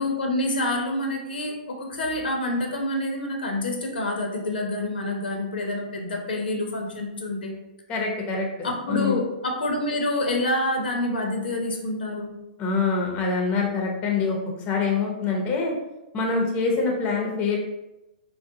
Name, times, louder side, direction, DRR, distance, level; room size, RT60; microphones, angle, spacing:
voice 1, 0.0-7.6 8.6-12.3, left 1 dB, 85° left, 1 dB, 0.7 m, -27 dB
voice 2, 7.9-9.2 12.6-15.7 16.1-17.6, left 4 dB, 25° left, 0 dB, 0.6 m, -25 dB
3.8 x 2.1 x 2.7 m, 0.97 s
hypercardioid pair, 140°, 5 cm